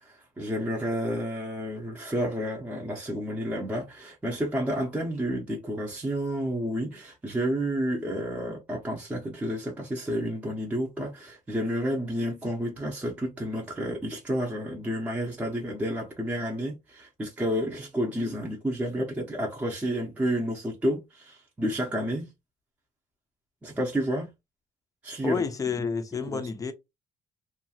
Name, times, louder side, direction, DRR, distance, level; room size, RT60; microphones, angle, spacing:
voice 1, 0.0-22.3 23.6-24.3 25.0-25.4 26.3-26.4, equal, 10° right, 0.7 m, -30 dB
voice 2, 25.2-26.7, left 5 dB, 25° left, 0.5 m, -30 dB
2.8 x 2.3 x 2.8 m
cardioid pair, 140°, 14 cm